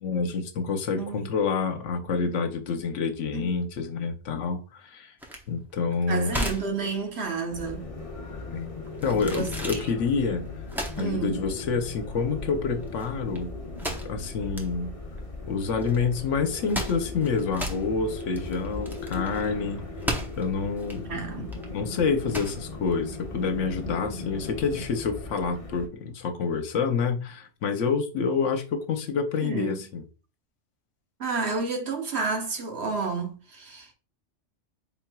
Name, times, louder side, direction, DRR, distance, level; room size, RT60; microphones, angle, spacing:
voice 1, 0.0-5.1 5.5-6.3 8.5-8.7 9.0-10.5 11.0-13.5 14.0-14.9 15.5-19.8 20.4-21.2 21.7-30.0, left 5 dB, 75° left, 1.0 m, -28 dB
voice 2, 1.0-1.3 3.3-3.5 6.1-7.9 9.0-9.8 11.0-11.4 21.1-21.5 29.4-29.8 31.2-33.9, right 4 dB, 60° right, 1.1 m, -31 dB
sound 1, 5.2-23.7, equal, 5° right, 0.4 m, -37 dB
sound 2, 7.5-25.9, left 3 dB, 30° left, 0.9 m, -38 dB
4.4 x 3.7 x 2.2 m
omnidirectional pair, 1.3 m